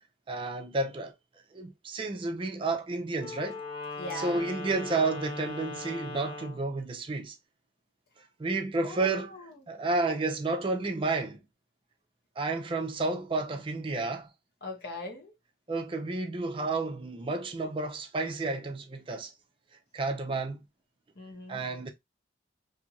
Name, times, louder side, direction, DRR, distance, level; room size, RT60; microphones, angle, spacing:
voice 1, 0.3-1.1 1.5-3.6 4.1-7.3 8.4-9.3 9.7-11.4 12.4-14.3 15.7-19.3 19.9-20.6 21.5-21.9, right 3 dB, 30° right, 0.4 m, -31 dB
Wind instrument woodwind instrument, 3.1-6.7, left 3 dB, 30° left, 0.4 m, -39 dB
voice 2, 4.0-4.4 8.8-9.5 14.6-15.3 21.1-21.6, left 2 dB, 60° left, 1.1 m, -40 dB
2.7 x 2.5 x 2.8 m
head